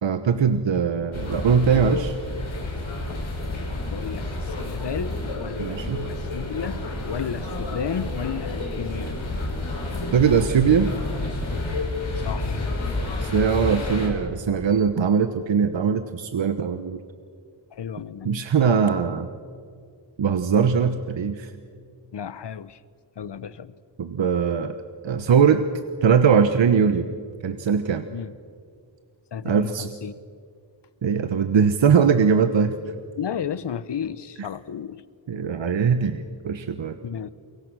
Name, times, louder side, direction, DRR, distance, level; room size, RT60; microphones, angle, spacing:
voice 1, 0.0-2.1 5.6-6.1 10.1-10.9 13.2-17.0 18.2-19.3 20.2-21.5 24.0-24.8 25.0-25.6 26.0-27.1 27.4-28.0 29.4-29.9 31.0-32.7 35.3-37.0, right 6 dB, 70° right, 9 dB, 1.1 m, -21 dB
sound 1, 1.1-14.1, left 2 dB, 85° left, 5.8 m, -29 dB
voice 2, 3.9-5.8 6.1-6.8 7.0-9.1 12.2-12.7 13.8-14.2 17.7-18.4 22.1-22.8 23.2-23.7 28.1-28.3 29.3-30.1 33.2-35.0 37.0-37.3, left 8 dB, 60° left, 16 dB, 0.9 m, -33 dB
30.0 x 23.5 x 6.2 m, 2.2 s
wide cardioid pair, 115°, 46 cm